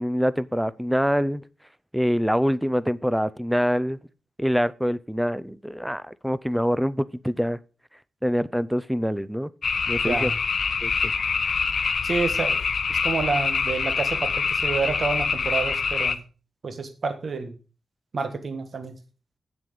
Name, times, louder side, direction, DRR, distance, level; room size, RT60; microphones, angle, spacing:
voice 1, 0.0-1.4 1.9-4.0 4.4-7.6 8.2-9.5 9.9-10.3 10.8-10.9, equal, ahead, 0.5 m, -25 dB
sound 1, 9.6-16.1, left 5 dB, 55° left, 0.8 m, -25 dB
voice 2, 10.0-10.3 12.0-12.6 12.9-16.2 16.6-17.5 18.1-18.9, right 4 dB, 55° right, 1.4 m, -28 dB
8.1 x 7.5 x 5.1 m
wide cardioid pair, 110°, 0 cm